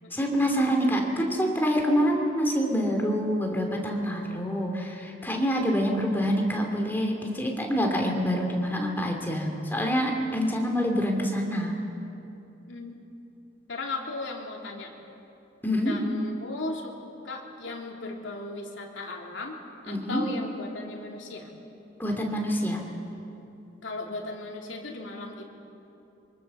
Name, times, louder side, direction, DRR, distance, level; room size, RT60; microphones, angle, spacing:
voice 1, 0.1-11.8 15.6-16.0 19.9-20.2 22.0-22.8, equal, 10° left, 1 dB, 2.8 m, -26 dB
voice 2, 12.7-13.0 13.7-14.9 15.8-16.9 17.2-19.6 19.8-21.5 23.8-25.5, left 2 dB, 70° left, 0 dB, 3.2 m, -37 dB
24.5 x 24.5 x 7.0 m, 2.9 s
head